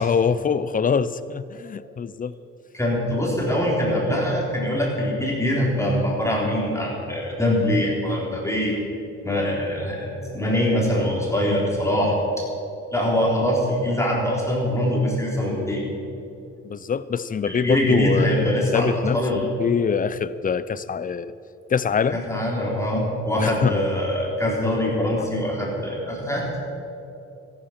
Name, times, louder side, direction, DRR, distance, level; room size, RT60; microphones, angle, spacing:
voice 1, 0.0-2.3 16.6-21.3 21.7-22.2 23.4-23.8, left 6 dB, 30° left, 16 dB, 0.5 m, -24 dB
voice 2, 2.7-8.7 9.2-12.1 12.9-15.8 17.4-19.4 22.1-26.6, left 1 dB, 10° left, -3 dB, 3.8 m, -23 dB
14.0 x 11.5 x 5.9 m, 2.8 s
cardioid pair, 90°, 30 cm